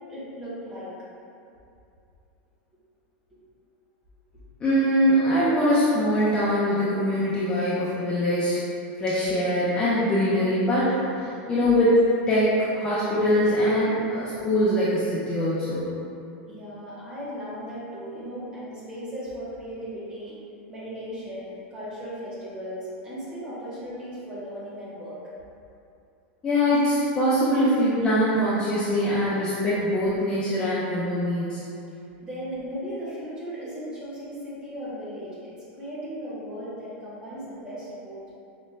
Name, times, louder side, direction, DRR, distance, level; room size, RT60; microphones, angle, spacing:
voice 1, 0.1-0.9 16.5-20.4 20.7-25.2 32.2-38.3, equal, 15° right, -9 dB, 0.9 m, -37 dB
voice 2, 4.6-8.6 9.0-12.0 12.3-16.0 26.4-31.6, equal, 15° left, -10 dB, 0.4 m, -23 dB
4.9 x 2.1 x 3.2 m, 2.6 s
supercardioid pair, 170°, 6 cm